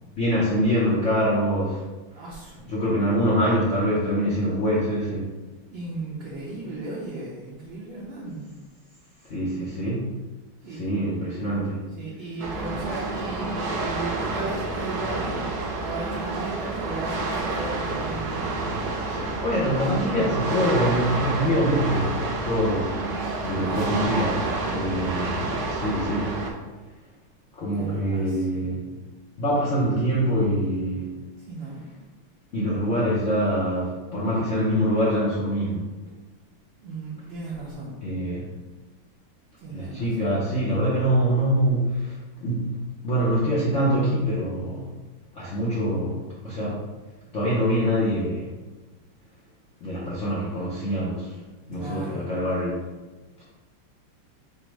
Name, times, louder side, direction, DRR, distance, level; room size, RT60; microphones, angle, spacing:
voice 1, 0.1-1.8 2.7-5.3 9.2-10.1 10.7-11.8 19.1-23.0 23.4-24.4 24.7-25.4 25.7-26.4 27.5-28.9 29.4-31.1 32.5-35.9 38.0-38.5 39.7-42.7 43.0-44.9 45.3-46.8 47.3-48.5 49.8-51.3 51.7-52.8, equal, 80° left, -7 dB, 0.6 m, -24 dB
voice 2, 2.1-2.7 5.7-8.5 10.6-10.8 11.9-15.4 15.8-18.5 23.6-24.1 25.0-25.7 27.8-28.7 31.4-31.8 36.8-38.0 39.6-40.5 51.7-52.3, right 2 dB, 65° right, -6 dB, 1.4 m, -36 dB
sound 1, 12.4-26.5, right 3 dB, 85° right, 0.8 m, -29 dB
5.1 x 2.0 x 4.6 m, 1.2 s
omnidirectional pair, 2.4 m